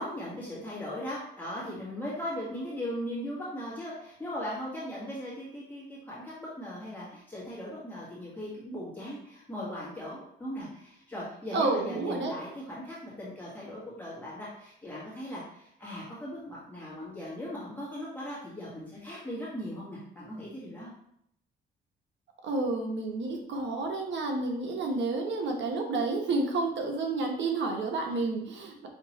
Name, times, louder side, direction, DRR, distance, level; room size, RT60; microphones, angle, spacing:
voice 1, 0.0-20.9, equal, 10° left, -8 dB, 1.5 m, -38 dB
voice 2, 11.5-12.3 22.4-28.9, right 3 dB, 65° right, 2 dB, 1.0 m, -30 dB
5.6 x 2.9 x 3.0 m, 0.73 s
cardioid pair, 90°, 20 cm